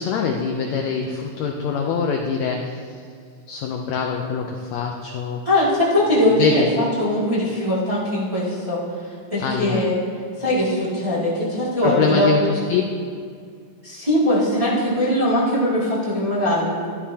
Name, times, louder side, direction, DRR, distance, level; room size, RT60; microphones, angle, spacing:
voice 1, 0.0-2.8 3.5-5.4 6.4-6.7 9.4-9.8 11.8-12.8, left 5 dB, 85° left, 1 dB, 1.5 m, -24 dB
voice 2, 5.4-8.8 9.3-10.0 10.4-12.4 13.8-16.9, left 1 dB, 15° right, -9 dB, 1.6 m, -21 dB
12.5 x 12.0 x 2.8 m, 2.1 s
omnidirectional pair, 3.9 m